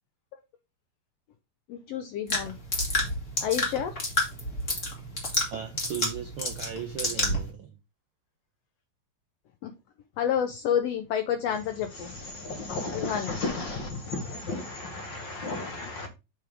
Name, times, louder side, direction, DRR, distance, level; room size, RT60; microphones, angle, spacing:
voice 1, 1.7-2.6 3.4-3.9 9.6-9.7 10.2-12.1 12.9-13.3, left 9 dB, 75° left, 1.5 m, -29 dB
sound 1, 2.3-7.5, left 1 dB, 30° left, 1.9 m, -30 dB
voice 2, 5.5-7.7, right 9 dB, 75° right, 1.2 m, -37 dB
voice 3, 11.9-16.1, left 3 dB, 55° left, 1.4 m, -34 dB
7.6 x 3.5 x 4.9 m
omnidirectional pair, 3.5 m